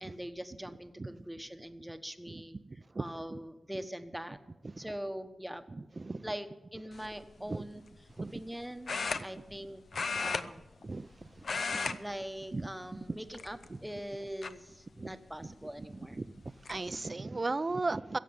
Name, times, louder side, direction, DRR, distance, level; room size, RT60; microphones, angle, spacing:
voice 1, 0.0-2.6 3.0-4.4 4.8-5.6 6.2-9.8 10.2-10.6 12.0-16.2, equal, 5° right, 1.1 m, -42 dB
voice 2, 5.7-6.2 7.5-7.6 8.2-8.3 9.1-9.2 10.8-11.1 11.9-12.0 12.5-13.0 15.0-15.1 15.9-16.3 16.7-18.2, right 3 dB, 35° right, 0.6 m, -36 dB
sound 1, 6.9-7.2 8.9-9.6 9.9-11.1 11.4-12.0 12.3-12.5 13.3-13.9 14.4-14.5 16.0-16.1 16.4-16.8, left 4 dB, 65° left, 0.7 m, -35 dB
16.0 x 7.4 x 9.6 m
cardioid pair, 65°, 0 cm